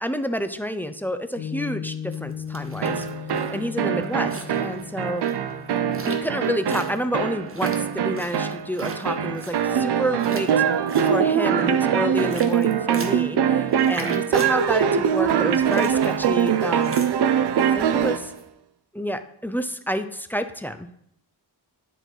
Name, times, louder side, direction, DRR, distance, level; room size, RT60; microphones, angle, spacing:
voice 1, 0.0-3.1 3.5-5.2 6.1-10.5 11.0-17.0 17.7-18.3 18.9-20.9, equal, 5° left, 10 dB, 0.3 m, -29 dB
Piano, 1.4-8.0, left 8 dB, 80° left, 1.3 m, -38 dB
sound 1, 2.1-18.4, right 3 dB, 30° right, 0.9 m, -42 dB
sound 2, 2.8-18.3, right 8 dB, 70° right, 0.5 m, -23 dB
10.0 x 4.5 x 3.9 m, 0.71 s
wide cardioid pair, 145°, 42 cm